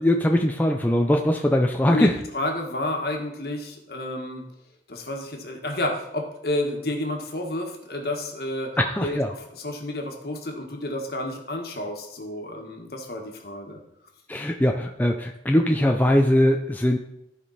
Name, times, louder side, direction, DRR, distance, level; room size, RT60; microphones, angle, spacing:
voice 1, 0.0-2.2 8.8-9.3 14.3-17.0, left 1 dB, 10° left, 2 dB, 0.5 m, -21 dB
voice 2, 1.9-4.4 4.9-8.7 9.0-13.8, left 1 dB, 55° left, 2 dB, 1.6 m, -30 dB
15.0 x 5.2 x 4.2 m, 0.82 s
head